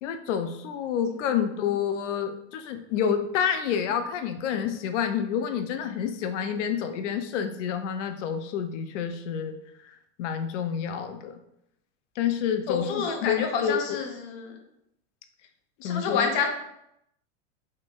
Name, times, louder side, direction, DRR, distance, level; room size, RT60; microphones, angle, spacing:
voice 1, 0.0-9.6 9.8-11.4 12.2-14.0 15.8-16.3, left 8 dB, 85° left, 8 dB, 0.6 m, -29 dB
voice 2, 12.7-14.5 15.8-16.5, left 5 dB, 45° left, 3 dB, 0.7 m, -28 dB
3.7 x 3.2 x 2.4 m, 0.79 s
supercardioid pair, 160°, 36 cm